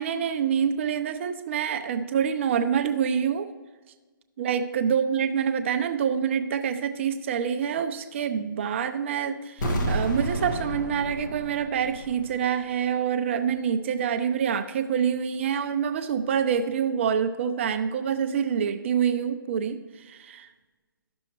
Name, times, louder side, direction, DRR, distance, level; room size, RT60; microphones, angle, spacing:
voice 1, 0.0-3.5 4.4-20.5, right 7 dB, 35° right, 9 dB, 0.4 m, -26 dB
sound 1, 9.6-12.5 12.7-12.8, right 1 dB, 55° left, 1.5 m, -30 dB
13.0 x 6.1 x 3.1 m, 1.3 s
hypercardioid pair, 150°, 12 cm